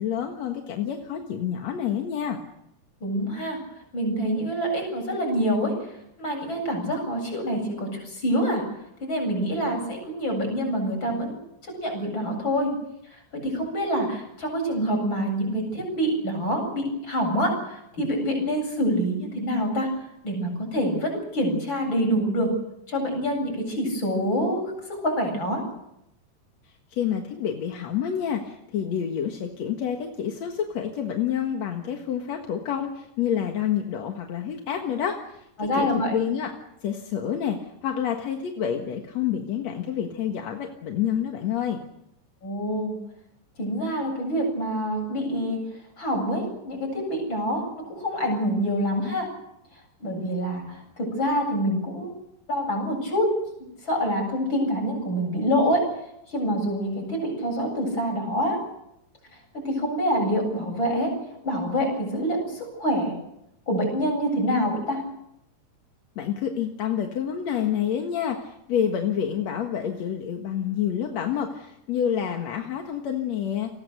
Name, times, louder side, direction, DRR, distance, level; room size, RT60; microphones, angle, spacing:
voice 1, 0.0-2.4 26.9-35.4 35.7-36.5 36.8-41.8 66.2-73.7, left 9 dB, 55° left, 3 dB, 2.3 m, -28 dB
voice 2, 3.0-3.6 3.9-5.7 6.2-8.6 9.0-12.7 13.1-19.9 20.2-22.5 22.9-24.6 24.9-25.6 35.6-36.2 42.4-43.0 43.6-45.6 46.0-49.3 50.0-52.1 52.5-53.3 53.6-55.8 56.3-58.6 59.5-61.1 61.4-63.2 63.7-65.0, equal, 30° left, 2 dB, 8.7 m, -26 dB
30.0 x 20.0 x 6.8 m, 0.82 s
omnidirectional pair, 4.6 m